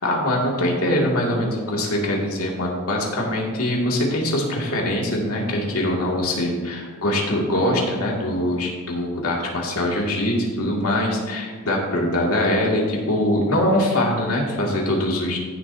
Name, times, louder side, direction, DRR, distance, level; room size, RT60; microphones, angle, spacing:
voice 1, 0.0-15.4, left 1 dB, 85° left, -2 dB, 2.2 m, -23 dB
15.5 x 7.2 x 2.7 m, 1.5 s
head